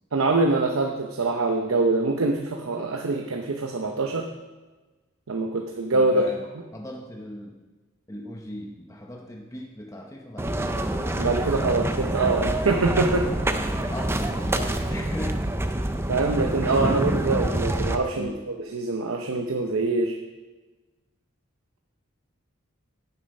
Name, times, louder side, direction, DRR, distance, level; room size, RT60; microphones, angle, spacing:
voice 1, 0.1-4.3 5.3-6.3 11.2-13.3 16.1-20.2, right 3 dB, 80° right, 3 dB, 0.7 m, -24 dB
voice 2, 5.9-6.4 6.7-7.6 8.1-11.0 11.4-11.7 13.9-15.4 18.2-18.4, left 1 dB, 15° left, 0 dB, 0.8 m, -38 dB
sound 1, 10.4-18.0, right 1 dB, 10° right, 0.5 m, -26 dB
9.5 x 7.3 x 5.4 m, 1.2 s
head